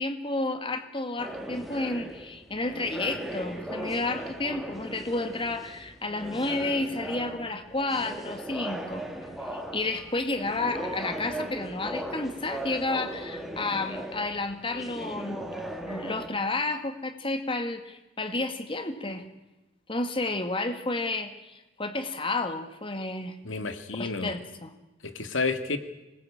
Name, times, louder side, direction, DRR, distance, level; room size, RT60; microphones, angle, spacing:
voice 1, 0.0-9.1 9.5-15.4 15.9-19.2 19.9-23.4 24.0-24.7, left 2 dB, 25° left, 8 dB, 2.0 m, -31 dB
sound 1, 1.2-16.3, right 1 dB, ahead, 3.1 m, -38 dB
voice 2, 23.4-24.4 25.0-25.8, left 3 dB, 80° left, 9 dB, 2.1 m, -30 dB
26.0 x 20.0 x 8.7 m, 1.0 s
head